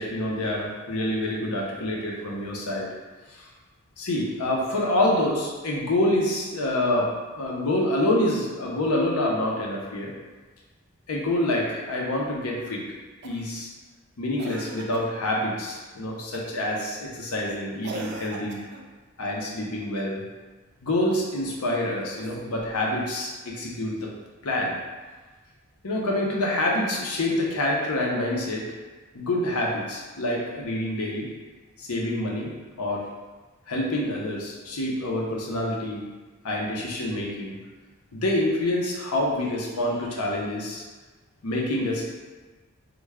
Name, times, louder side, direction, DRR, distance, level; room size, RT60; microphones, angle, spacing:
voice 1, 0.0-2.9 3.3-3.5 4.0-7.1 7.4-10.1 11.1-12.8 13.2-13.7 14.2-18.6 19.2-20.2 20.8-24.1 24.4-24.8 25.8-28.6 29.1-31.3 31.8-32.5 32.8-33.1 33.7-36.0 36.4-37.6 38.1-40.8 41.4-42.1, left 1 dB, 80° left, -2 dB, 0.7 m, -27 dB
Cough, 13.2-13.6 14.4-15.2 16.3-16.7 17.8-18.9 22.0-22.8 24.3-24.4, right 2 dB, 50° right, 0.3 m, -40 dB
3.3 x 2.2 x 3.4 m, 1.3 s
head